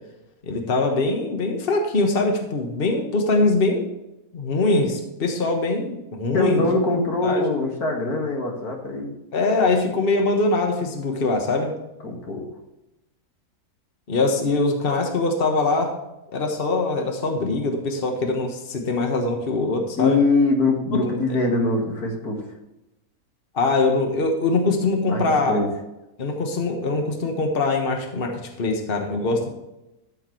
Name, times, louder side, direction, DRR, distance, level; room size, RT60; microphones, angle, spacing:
voice 1, 0.4-3.9 4.3-6.7 7.2-7.4 9.3-11.7 14.1-15.9 16.3-20.2 20.9-21.2 23.5-25.6 26.2-29.5, left 3 dB, 40° left, 3 dB, 1.5 m, -22 dB
voice 2, 6.3-9.1 12.0-12.5 20.0-22.5 25.1-25.2 25.5-25.7, left 2 dB, 85° left, 1 dB, 2.4 m, -23 dB
13.0 x 6.6 x 3.2 m, 0.94 s
omnidirectional pair, 1.6 m